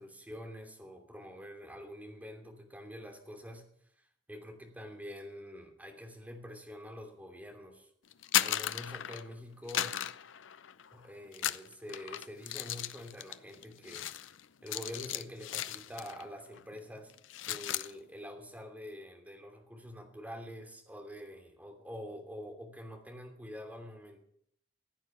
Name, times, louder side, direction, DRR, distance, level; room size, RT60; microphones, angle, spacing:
voice 1, 0.0-3.6 4.0-7.9 8.4-9.9 10.9-14.1 14.6-17.1 17.5-24.2, equal, 10° right, 2 dB, 3.0 m, -46 dB
sound 1, 8.1-9.3 9.7-10.9 11.3-16.3 16.5-16.8 17.1-17.9, left 11 dB, 85° left, 0.6 m, -36 dB
15.5 x 9.3 x 7.2 m, 0.68 s
head